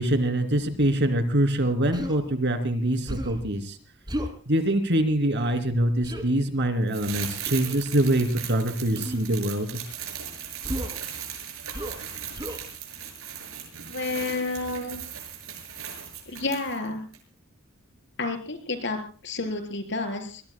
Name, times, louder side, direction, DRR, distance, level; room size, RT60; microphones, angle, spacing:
voice 1, 0.0-3.8 4.5-9.7, right 1 dB, 55° right, 7 dB, 3.0 m, -24 dB
Human voice, 1.9-2.2 3.1-3.5 4.1-4.4 6.0-6.3 7.5-7.8 9.0-9.3 10.6-11.0 11.7-12.0 12.3-12.6, equal, 20° right, 2.9 m, -33 dB
sound 1, 6.9-16.9 17.1-17.2, right 9 dB, 80° right, 6.7 m, -38 dB
voice 2, 13.9-15.0 16.3-17.0 18.2-20.4, left 3 dB, 60° left, 7 dB, 4.2 m, -30 dB
26.0 x 21.5 x 2.3 m, 0.39 s
head